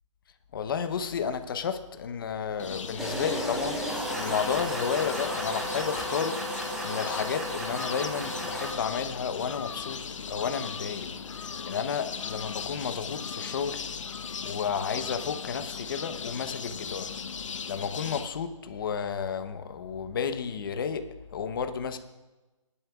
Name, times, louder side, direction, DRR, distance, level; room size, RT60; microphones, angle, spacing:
voice 1, 0.5-3.8 4.2-6.4 6.8-11.1 11.6-13.8 14.4-17.1 17.6-22.0, left 7 dB, 40° left, 9 dB, 1.0 m, -32 dB
sound 1, 2.6-18.3, left 6 dB, 65° left, 0.9 m, -38 dB
sound 2, 3.0-8.7, right 1 dB, ahead, 0.5 m, -33 dB
25.5 x 11.0 x 2.5 m, 1.1 s
hypercardioid pair, 160°, 17 cm